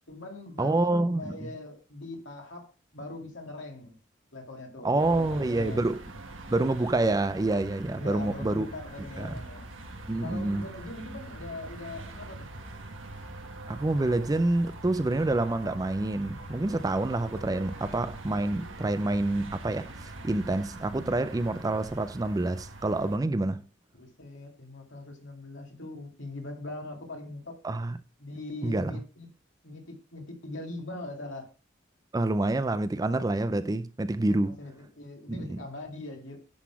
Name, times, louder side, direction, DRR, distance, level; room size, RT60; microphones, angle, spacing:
voice 1, 0.0-2.7 2.9-4.0 4.3-5.8 7.9-9.7 10.2-12.5 24.0-27.6 28.2-29.3 29.6-31.5 34.2-36.4, left 2 dB, 70° left, 2.4 m, -41 dB
voice 2, 0.6-1.3 4.8-6.0 6.5-8.7 9.2-9.4 10.1-10.7 13.7-23.6 27.6-28.0 28.6-29.0 32.1-34.6 35.3-35.6, right 2 dB, 20° right, 0.4 m, -27 dB
sound 1, 5.0-23.2, right 2 dB, 80° right, 1.4 m, -43 dB
10.5 x 4.0 x 5.8 m
head